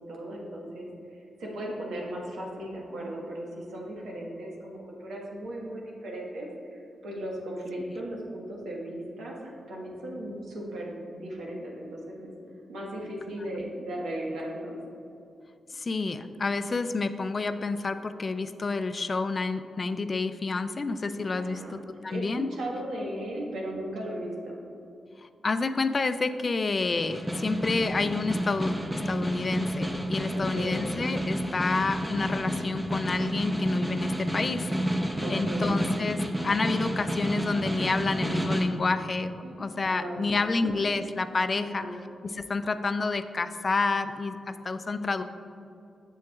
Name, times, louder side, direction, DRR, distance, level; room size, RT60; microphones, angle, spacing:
voice 1, 0.1-12.3 12.7-14.8 21.3-21.8 22.1-24.6 30.3-30.8 35.1-35.8 39.4-39.6 39.9-40.2 41.5-42.0, right 1 dB, 85° right, -2 dB, 1.3 m, -37 dB
voice 2, 15.7-22.5 25.4-35.0 35.3-36.2 36.4-39.3 39.6-41.9 42.3-45.2, left 3 dB, 40° left, 10 dB, 0.3 m, -29 dB
Snare drum, 26.9-38.8, equal, 10° right, 0.6 m, -30 dB
sound 1, 27.5-33.8, right 1 dB, 55° right, 1.0 m, -49 dB
7.6 x 7.0 x 2.3 m, 2.6 s
cardioid pair, 80°, 0 cm